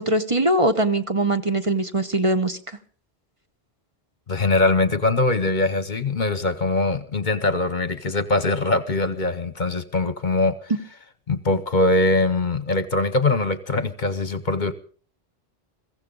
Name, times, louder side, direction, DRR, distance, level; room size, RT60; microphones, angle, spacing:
voice 1, 0.0-2.6, right 1 dB, 30° right, 8 dB, 1.0 m, -21 dB
voice 2, 4.3-10.5 11.3-14.7, left 2 dB, 50° left, 12 dB, 1.0 m, -22 dB
23.0 x 15.5 x 3.9 m, 0.43 s
omnidirectional pair, 1.1 m